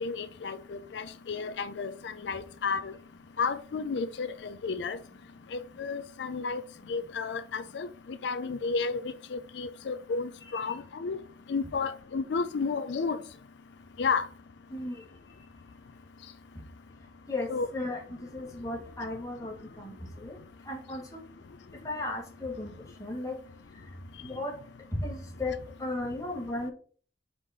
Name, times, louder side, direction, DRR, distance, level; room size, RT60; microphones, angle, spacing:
voice 1, 0.0-2.9 3.4-5.0 5.5-6.6 6.9-11.2 11.5-13.2 14.0-14.3 17.5-17.7, left 4 dB, 80° left, 0.4 m, -32 dB
voice 2, 14.7-15.0 17.3-20.4 20.7-21.2 21.8-22.7 23.0-23.4 24.2-24.6 24.9-26.7, left 2 dB, 20° left, 1.7 m, -35 dB
4.9 x 4.1 x 5.8 m
head